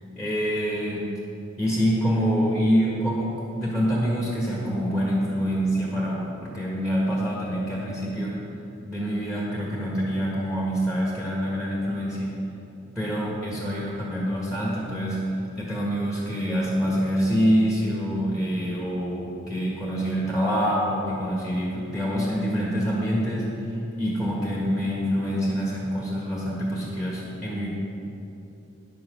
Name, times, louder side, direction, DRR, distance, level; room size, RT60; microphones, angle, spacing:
voice 1, 0.2-1.1 1.6-8.4 8.9-12.4 13.0-15.3 15.6-27.7, equal, 5° right, -5 dB, 1.7 m, -26 dB
10.5 x 7.8 x 6.2 m, 2.9 s
head